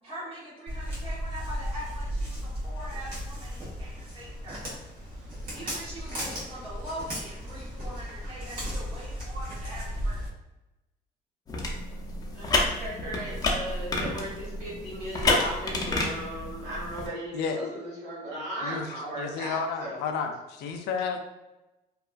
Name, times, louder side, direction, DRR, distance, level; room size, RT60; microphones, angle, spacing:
voice 1, 0.0-4.7 5.5-10.2, equal, 35° right, -7 dB, 1.3 m, -42 dB
Walk footsteps, 0.7-10.3, equal, 55° right, 1.4 m, -35 dB
sound 1, 11.5-17.1, left 2 dB, 25° left, 0.5 m, -29 dB
voice 2, 12.3-20.0, equal, 75° right, -6 dB, 1.5 m, -36 dB
voice 3, 18.6-21.2, left 5 dB, 80° left, 4 dB, 0.4 m, -32 dB
2.8 x 2.4 x 2.3 m, 0.99 s
cardioid pair, 110°, 17 cm